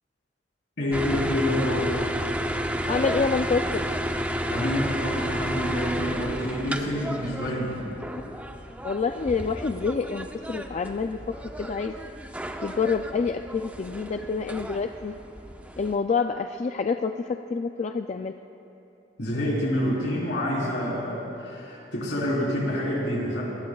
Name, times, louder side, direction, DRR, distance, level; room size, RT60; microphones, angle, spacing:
voice 1, 0.8-1.9 4.5-7.9 19.2-23.4, left 1 dB, 75° left, -4 dB, 4.0 m, -27 dB
sound 1, 0.9-16.0, equal, 10° right, 0.6 m, -32 dB
voice 2, 2.9-3.8 8.1-8.4 8.8-11.2 11.6-11.9 12.6-15.1 15.8-18.3, left 5 dB, 40° left, 6 dB, 0.3 m, -27 dB
23.5 x 19.5 x 2.4 m, 3.0 s
head